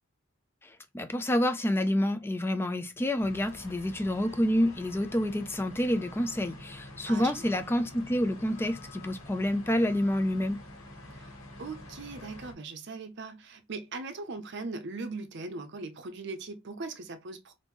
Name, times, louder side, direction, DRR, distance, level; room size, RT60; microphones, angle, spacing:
voice 1, 0.9-10.6, left 1 dB, 10° left, 0.3 m, -28 dB
sound 1, 3.2-12.5, left 1 dB, 85° left, 1.2 m, -47 dB
voice 2, 7.1-7.6 11.1-11.3 11.6-17.5, right 3 dB, 55° right, 0.6 m, -40 dB
2.9 x 2.6 x 3.4 m
head